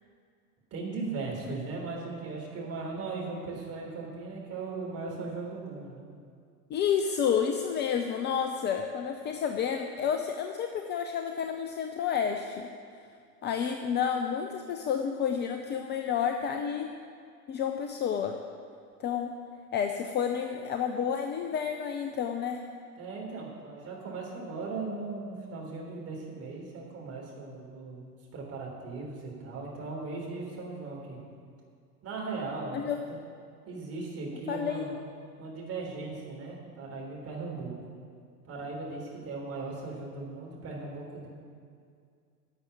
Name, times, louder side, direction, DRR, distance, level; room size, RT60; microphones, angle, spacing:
voice 1, 0.7-6.0 23.0-31.2 32.0-32.8 33.1-33.2 33.7-34.9 35.4-37.7 38.4-41.3, right 3 dB, 30° right, -2 dB, 3.6 m, -38 dB
voice 2, 6.7-12.7 13.4-16.9 17.5-18.4 19.0-19.3 19.7-22.6 32.7-33.0 34.5-35.0, left 7 dB, 25° left, 6 dB, 0.5 m, -30 dB
11.5 x 7.0 x 9.1 m, 2.3 s
figure-of-eight pair, 80°, 47 cm